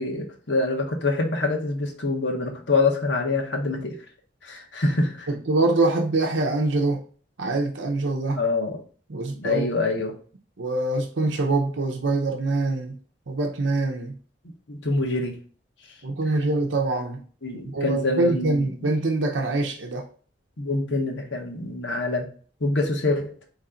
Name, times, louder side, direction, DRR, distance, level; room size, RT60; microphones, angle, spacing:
voice 1, 0.0-4.0 4.4-5.3 8.3-8.8 9.3-10.1 14.7-15.4 17.4-18.7 20.6-22.3 22.6-23.3, left 3 dB, 75° left, 1.2 m, -25 dB
voice 2, 5.3-7.0 7.4-8.4 9.1-9.6 10.6-13.0 13.3-14.1 16.0-17.2 17.7-20.1, right 2 dB, 85° right, 0.7 m, -24 dB
4.3 x 3.2 x 3.7 m
head